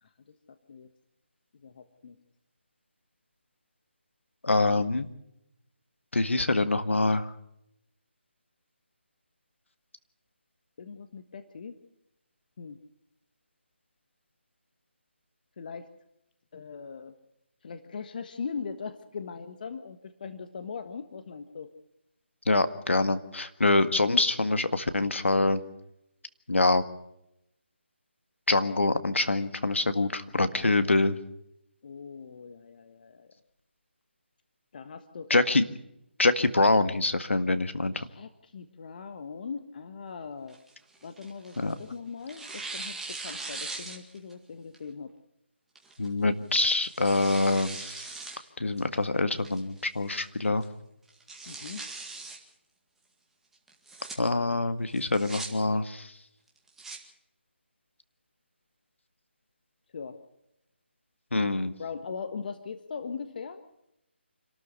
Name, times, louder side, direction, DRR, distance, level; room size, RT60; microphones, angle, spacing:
voice 1, 0.0-0.9 1.6-2.2 4.7-4.8 10.8-11.8 12.6-12.8 15.6-15.9 16.5-17.1 17.6-21.7 30.5-31.1 31.8-33.3 34.7-35.4 38.0-40.6 41.0-45.1 51.5-51.9 59.9-60.2 61.3-63.6, left 5 dB, 45° left, 9 dB, 1.4 m, -40 dB
voice 2, 4.4-5.1 6.1-7.3 22.5-25.6 26.5-26.8 28.5-31.1 35.3-35.7 36.2-38.1 41.6-41.7 46.0-48.1 48.6-50.6 54.2-56.1 61.3-61.7, left 2 dB, 90° left, 10 dB, 1.8 m, -25 dB
Tearing, 40.5-41.8 42.3-44.3 44.7-44.8 45.8-46.1 46.6-48.4 48.8-48.9 49.4-49.9 50.2-50.3 50.6-50.7 51.1-52.4 53.7-54.1 54.9-55.5 56.5-57.0, right 3 dB, 5° right, 2.0 m, -40 dB
27.0 x 13.0 x 8.2 m, 0.83 s
figure-of-eight pair, 160°, 6 cm